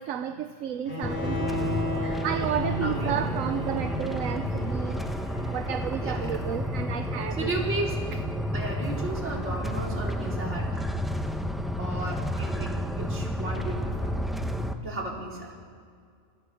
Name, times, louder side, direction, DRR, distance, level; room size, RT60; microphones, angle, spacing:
voice 1, 0.0-5.0 5.5-7.5, right 9 dB, 80° right, 1.1 m, -32 dB
Bowed string instrument, 0.9-6.9, left 1 dB, 45° left, 3.9 m, -35 dB
sound 1, 1.0-14.7, equal, ahead, 0.8 m, -31 dB
voice 2, 2.8-3.2 6.0-6.4 7.3-8.1 8.5-10.8 11.8-14.1 14.8-15.6, right 2 dB, 55° right, 4.1 m, -34 dB
29.5 x 15.5 x 7.1 m
omnidirectional pair, 1.4 m